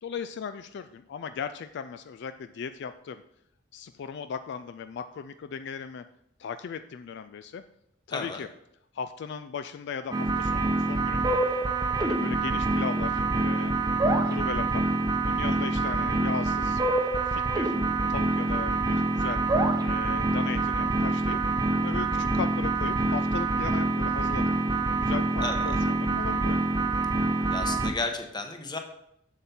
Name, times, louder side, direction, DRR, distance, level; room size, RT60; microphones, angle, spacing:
voice 1, 0.0-3.2 3.7-6.0 6.4-7.6 8.1-8.5 8.9-11.4 12.0-13.7 14.2-14.9 15.2-16.8 17.2-17.7 18.1-19.4 19.8-21.4 21.8-24.6 25.0-26.6, left 6 dB, 60° left, 10 dB, 0.3 m, -37 dB
voice 2, 8.1-8.4 15.5-15.7 25.4-25.8 27.5-28.8, left 3 dB, 20° left, 5 dB, 1.0 m, -33 dB
sound 1, 10.1-27.9, right 2 dB, 20° right, 0.8 m, -26 dB
7.3 x 7.1 x 4.3 m, 0.77 s
head